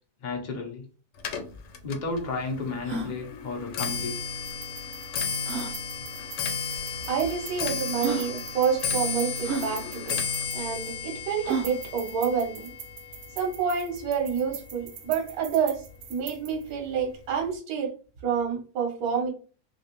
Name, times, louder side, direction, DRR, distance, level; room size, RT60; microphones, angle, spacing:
voice 1, 0.2-0.8 1.8-4.2, left 3 dB, 50° left, 0.5 m, -32 dB
Clock, 1.2-14.5 14.8-15.3 16.1-16.2 16.5-16.9 17.2-17.3, left 5 dB, 85° left, 1.2 m, -34 dB
sound 1, 1.3-1.4 1.5-1.6 2.2-2.3 2.8-3.1 4.5-4.6 5.4-5.8 6.7-6.8 7.6-7.7 8.0-8.3 9.4-9.7 11.4-11.8, right 4 dB, 45° right, 0.7 m, -31 dB
sound 2, 4.4-11.1 11.5-16.7, right 9 dB, 90° right, 1.2 m, -43 dB
voice 2, 7.1-10.2 10.5-12.7 13.4-15.8 16.1-17.9 18.2-19.3, right 7 dB, 65° right, 1.3 m, -28 dB
3.1 x 2.9 x 2.9 m
omnidirectional pair, 1.8 m